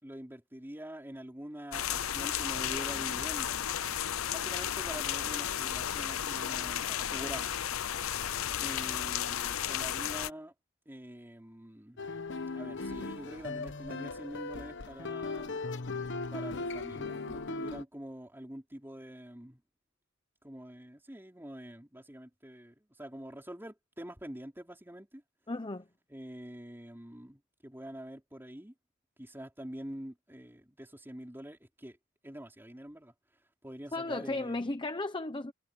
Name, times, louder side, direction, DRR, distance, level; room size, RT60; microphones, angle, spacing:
voice 1, 0.0-3.6 4.3-7.6 8.6-10.5 10.9-12.0 12.5-15.6 16.3-19.6 20.4-25.2 26.1-28.7 29.2-32.0 32.2-33.1 33.6-34.7, equal, 10° right, 4.4 m, -45 dB
sound 1, 1.7-10.3, left 10 dB, 75° left, 0.7 m, -33 dB
sound 2, 12.0-17.8, left 3 dB, 60° left, 1.2 m, -38 dB
voice 2, 25.5-25.8 33.9-35.5, left 2 dB, 20° left, 0.9 m, -35 dB
head